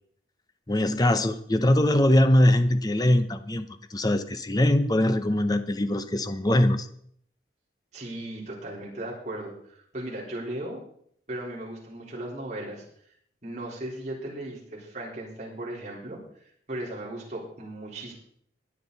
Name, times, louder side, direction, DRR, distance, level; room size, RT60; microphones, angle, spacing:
voice 1, 0.7-6.9, left 1 dB, 20° left, 10 dB, 0.7 m, -22 dB
voice 2, 7.9-10.8 11.3-12.8 13.4-16.2 16.7-18.1, right 1 dB, 40° right, -5 dB, 4.0 m, -36 dB
22.5 x 7.6 x 4.0 m, 0.66 s
head